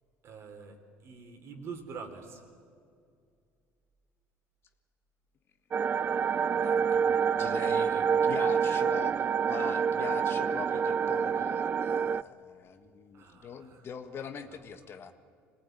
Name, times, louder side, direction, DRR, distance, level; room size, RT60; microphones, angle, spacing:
voice 1, 0.2-2.4 13.1-13.9 14.4-14.8, right 5 dB, 55° right, 5 dB, 3.6 m, -45 dB
sound 1, 5.7-12.2, right 7 dB, 35° right, 0.5 m, -27 dB
voice 2, 6.5-15.1, left 6 dB, 45° left, 9 dB, 1.5 m, -42 dB
22.5 x 19.0 x 9.3 m, 2.3 s
supercardioid pair, 85°, 5 cm